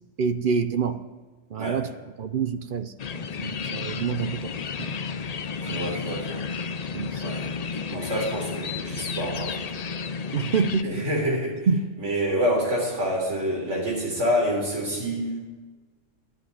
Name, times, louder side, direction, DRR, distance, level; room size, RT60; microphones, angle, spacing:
voice 1, 0.2-1.0 1.5-1.9 2.2-4.5 4.8-4.9 5.7-5.8 6.9-7.4 10.3-11.1 11.7-11.9, right 5 dB, 55° right, 10 dB, 0.7 m, -27 dB
sound 1, 3.0-10.8, left 5 dB, 50° left, 0.5 m, -32 dB
voice 2, 5.6-6.5 7.2-7.5 7.9-9.6 10.8-11.7 12.0-15.4, equal, 75° right, -1 dB, 4.0 m, -27 dB
12.5 x 8.0 x 9.6 m, 1.3 s
omnidirectional pair, 1.3 m